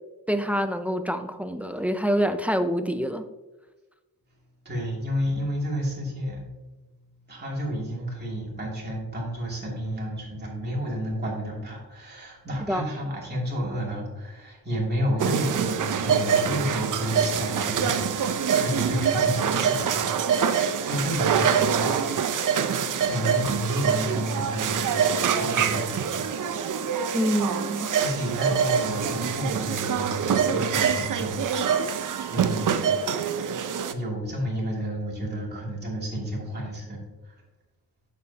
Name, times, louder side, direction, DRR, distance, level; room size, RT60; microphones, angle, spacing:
voice 1, 0.3-3.3 12.7-12.8 27.1-27.9, equal, 5° right, 8 dB, 0.5 m, -26 dB
voice 2, 4.6-6.4 7.3-22.5 23.1-25.1 25.3-26.6 28.0-30.3 30.5-32.8 33.9-37.3, equal, 25° right, -3 dB, 2.8 m, -31 dB
sound 1, 15.2-33.9, right 7 dB, 55° right, 0.7 m, -25 dB
8.7 x 7.3 x 2.8 m, 1.1 s
cardioid pair, 115°, 38 cm